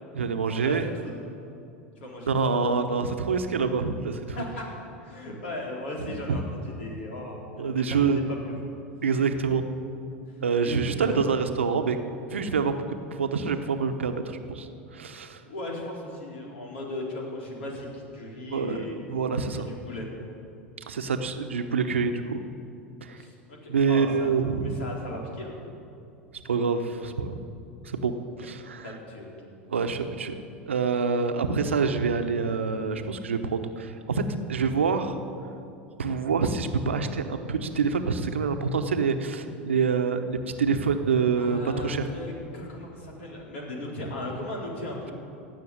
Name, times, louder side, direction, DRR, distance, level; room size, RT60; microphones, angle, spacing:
voice 1, 0.1-0.9 2.3-4.2 6.0-6.4 7.6-8.2 9.0-9.7 10.4-12.0 12.3-12.8 13.1-15.4 18.5-19.7 20.9-22.4 23.0-23.2 23.7-24.8 26.4-27.3 27.8-28.1 28.4-28.9 29.7-30.3 30.7-34.2 34.5-35.2 36.0-42.1, right 5 dB, 85° right, 7 dB, 1.0 m, -26 dB
voice 2, 2.0-2.5 4.3-8.0 10.6-11.2 15.4-18.9 19.7-20.2 23.2-24.3 24.6-25.5 28.8-29.3 41.4-45.1, left 1 dB, 75° left, -2 dB, 4.2 m, -37 dB
17.0 x 6.9 x 9.5 m, 2.6 s
hypercardioid pair, 80°, 6 cm